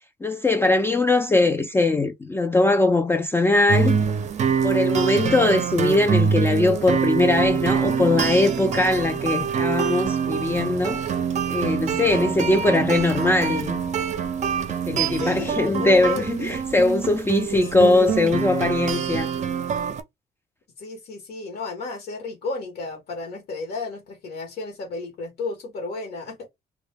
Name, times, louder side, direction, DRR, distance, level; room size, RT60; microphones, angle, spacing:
voice 1, 0.2-4.0 4.6-11.0 11.5-13.8 14.8-19.3, left 2 dB, 15° left, 0.3 m, -21 dB
sound 1, 3.7-20.0, right 7 dB, 45° right, 0.5 m, -25 dB
voice 2, 15.1-16.6 17.5-18.1 20.8-26.5, left 3 dB, 75° left, 0.9 m, -33 dB
2.1 x 2.1 x 3.2 m
cardioid pair, 95°, 17 cm